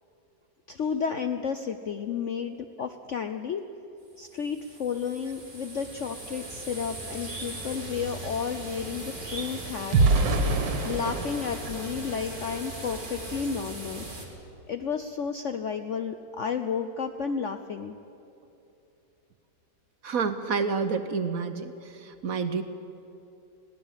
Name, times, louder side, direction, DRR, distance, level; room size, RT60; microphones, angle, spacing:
voice 1, 0.7-3.6 4.2-10.3 10.8-14.0 14.7-18.0, left 6 dB, 60° left, 8 dB, 0.8 m, -32 dB
sound 1, 4.2-14.3, right 1 dB, 25° right, 3.0 m, -39 dB
sound 2, 7.0-7.1 7.3-12.8 13.3-13.6 13.9-14.1, right 3 dB, 75° right, 2.2 m, -29 dB
voice 2, 20.0-21.7 22.2-22.6, right 5 dB, 55° right, 10 dB, 1.2 m, -28 dB
21.5 x 17.0 x 7.4 m, 2.9 s
omnidirectional pair, 2.0 m